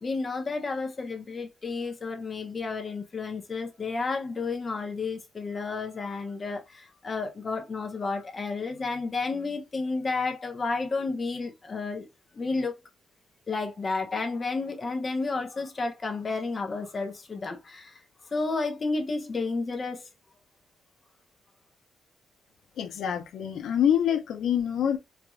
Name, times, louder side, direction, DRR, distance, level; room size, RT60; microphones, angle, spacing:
voice 1, 0.0-12.1 12.3-12.7 13.5-18.0 18.3-20.1, left 3 dB, 35° left, 0.9 m, -31 dB
voice 2, 22.8-25.0, left 9 dB, 80° left, 0.8 m, -26 dB
4.6 x 2.6 x 2.3 m
cardioid pair, 100°, 0 cm